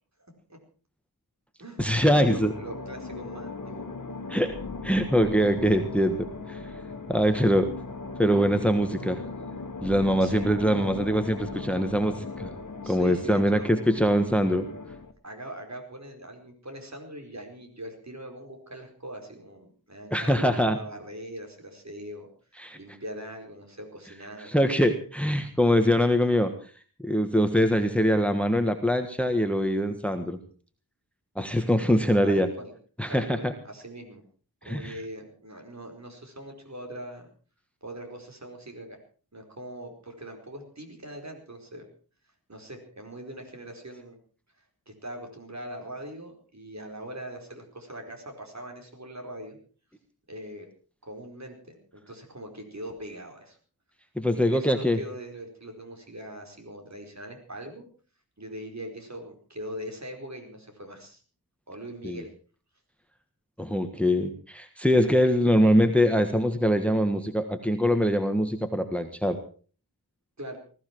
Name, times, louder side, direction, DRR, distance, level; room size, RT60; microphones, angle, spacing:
voice 1, 0.2-0.6 1.6-3.8 10.2-10.5 12.8-13.7 15.2-22.3 22.7-24.6 32.2-32.7 33.1-34.2 34.6-37.3 37.8-39.0 39.3-41.9 42.5-44.2 44.6-49.6 50.3-50.7 51.0-53.6 54.3-57.9 58.4-61.2 61.7-62.3 70.4-70.6, right 1 dB, 45° right, 3 dB, 4.7 m, -41 dB
sound 1, 1.8-15.1, left 3 dB, 55° left, 1.7 m, -38 dB
voice 2, 1.8-2.5 4.3-4.6 4.8-6.6 7.1-7.7 8.2-9.2 9.8-12.5 12.9-14.7 20.1-20.8 22.6-22.8 24.4-26.5 27.0-30.4 31.3-32.5 33.0-33.5 34.6-34.9 54.2-55.0 62.0-62.2 63.6-69.4, equal, 5° left, 7 dB, 1.5 m, -23 dB
20.0 x 14.5 x 4.6 m, 0.40 s
wide cardioid pair, 85°, 37 cm